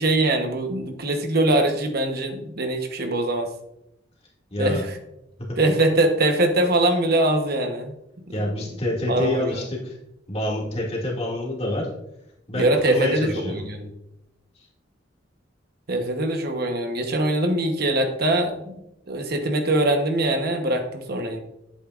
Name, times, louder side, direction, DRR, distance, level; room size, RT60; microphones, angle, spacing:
voice 1, 0.0-3.5 4.6-5.0 5.6-7.9 8.3-8.4 9.1-9.5 12.6-13.9 15.9-18.8 19.1-21.4, right 1 dB, 55° right, 5 dB, 1.0 m, -22 dB
voice 2, 4.5-4.8 8.3-10.0 10.3-11.9 12.5-13.6, left 1 dB, 35° left, -2 dB, 2.2 m, -27 dB
10.5 x 8.5 x 2.5 m, 0.83 s
head